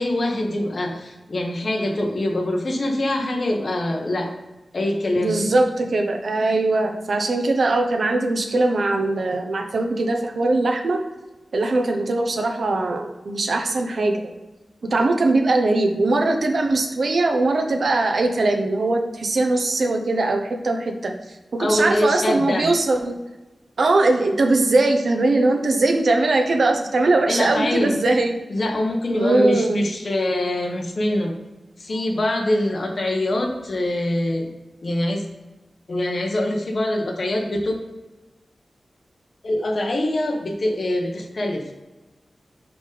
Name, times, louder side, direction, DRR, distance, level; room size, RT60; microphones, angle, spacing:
voice 1, 0.0-4.3 4.7-5.3 21.6-22.7 27.3-27.9 28.5-31.3 31.8-34.5 34.8-35.3 35.9-37.7 39.4-41.7, left 1 dB, 50° left, 1 dB, 1.2 m, -24 dB
voice 2, 5.2-11.0 11.5-14.2 14.8-21.1 21.5-23.2 23.8-28.4 29.1-29.8, right 2 dB, 70° right, 4 dB, 0.9 m, -20 dB
5.3 x 5.1 x 5.0 m, 1.1 s
wide cardioid pair, 105°, 0 cm